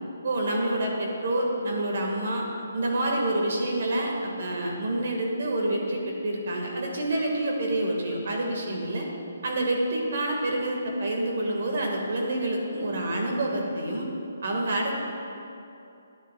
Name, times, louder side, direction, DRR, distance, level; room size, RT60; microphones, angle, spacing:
voice 1, 0.2-2.5 2.7-9.1 9.4-14.1 14.4-14.9, right 1 dB, 50° right, 0 dB, 1.5 m, -27 dB
11.5 x 9.8 x 2.2 m, 2.7 s
hypercardioid pair, 175°, 0 cm